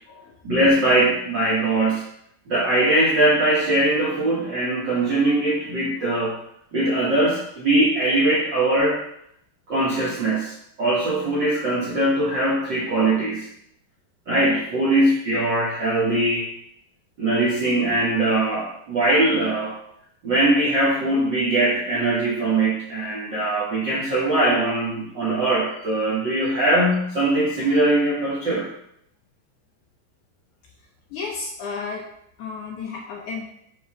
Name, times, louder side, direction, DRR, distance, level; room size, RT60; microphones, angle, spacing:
voice 1, 0.4-2.0 2.5-6.4 6.7-9.0 9.7-13.5 14.3-16.5 17.2-19.7 20.2-28.7, right 1 dB, 75° right, -6 dB, 1.0 m, -21 dB
voice 2, 31.1-32.0 32.4-33.5, left 4 dB, 70° left, -2 dB, 1.9 m, -32 dB
10.0 x 3.9 x 3.1 m, 0.73 s
omnidirectional pair, 4.3 m